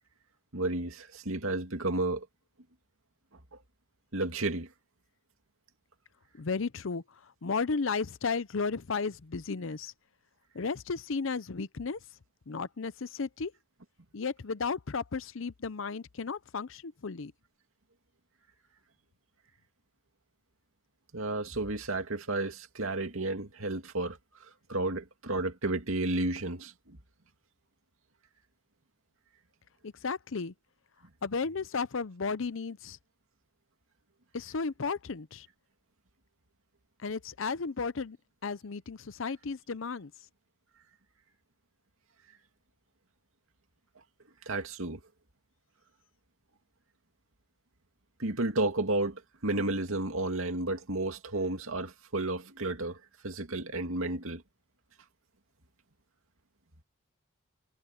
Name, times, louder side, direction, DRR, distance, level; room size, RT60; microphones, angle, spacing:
voice 1, 0.5-2.3 3.5-3.6 4.1-4.7 21.1-24.2 24.7-27.0 44.5-45.0 48.2-53.0 53.2-54.4, right 2 dB, 80° right, 2.4 m, -32 dB
voice 2, 6.3-9.9 10.5-12.0 12.5-13.5 14.1-17.3 29.8-30.5 31.2-33.0 34.3-35.5 37.0-38.2 38.4-40.1, left 4 dB, 70° left, 0.7 m, -34 dB
head